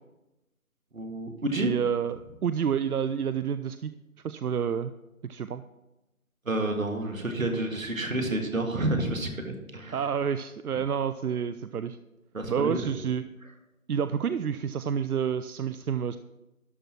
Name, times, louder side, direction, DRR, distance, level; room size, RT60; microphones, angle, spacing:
voice 1, 0.9-1.7 6.5-10.1 12.3-12.8, right 1 dB, 65° right, 4 dB, 1.9 m, -29 dB
voice 2, 1.6-3.9 4.2-4.9 5.2-5.6 9.9-12.0 12.5-13.2 13.9-16.2, right 7 dB, 90° right, 13 dB, 0.6 m, -29 dB
12.5 x 4.6 x 6.0 m, 1.0 s
figure-of-eight pair, 165°, 43 cm